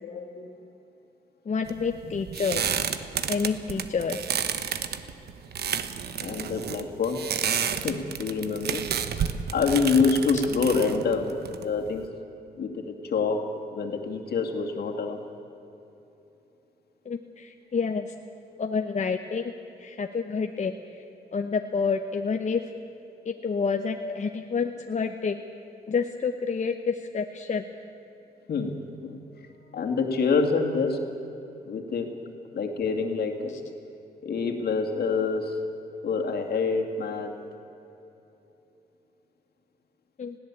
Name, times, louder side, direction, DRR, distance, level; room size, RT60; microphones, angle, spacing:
voice 1, 0.0-0.5 2.5-2.6 6.2-7.2 7.8-8.8 9.1-12.1 12.6-15.2 24.0-24.1 28.5-29.5 29.7-31.1 31.7-32.1 32.5-33.5 34.2-35.6 36.0-37.3, left 4 dB, 70° left, 2 dB, 2.5 m, -27 dB
voice 2, 1.5-2.8 3.3-4.3 10.3-10.4 17.0-18.1 18.6-19.5 19.8-20.7 21.3-22.6 23.2-25.4 25.9-27.6 40.2-40.4, left 5 dB, 45° left, 5 dB, 0.9 m, -28 dB
sound 1, 1.7-12.0, right 8 dB, 75° right, 1.0 m, -31 dB
20.0 x 16.0 x 8.5 m, 3.0 s
cardioid pair, 75°, 17 cm